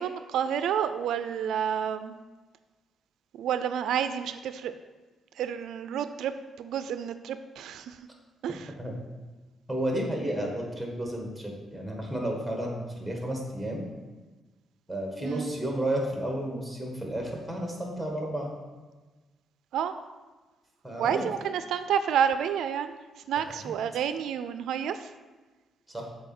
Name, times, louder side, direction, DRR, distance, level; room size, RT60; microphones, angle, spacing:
voice 1, 0.0-2.2 3.3-4.7 5.3-6.3 6.6-8.0 8.4-8.7 15.2-15.5 19.7-19.9 21.0-25.1, right 8 dB, 85° right, 11 dB, 0.3 m, -29 dB
voice 2, 9.7-13.8 14.9-18.5 20.8-21.3 23.6-23.7 25.9-26.1, right 1 dB, ahead, 0 dB, 1.7 m, -32 dB
7.0 x 4.3 x 6.0 m, 1.3 s
cardioid pair, 125°, 0 cm